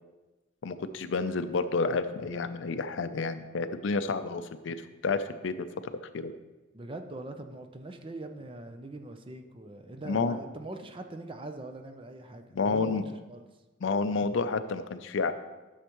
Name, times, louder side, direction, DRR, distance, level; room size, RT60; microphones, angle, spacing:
voice 1, 0.6-5.7 6.1-6.3 10.1-10.4 12.5-13.1 13.8-15.3, left 4 dB, 70° left, 11 dB, 0.5 m, -30 dB
voice 2, 6.7-13.4, right 2 dB, 25° right, 6 dB, 0.5 m, -42 dB
11.5 x 6.4 x 3.0 m, 1.2 s
head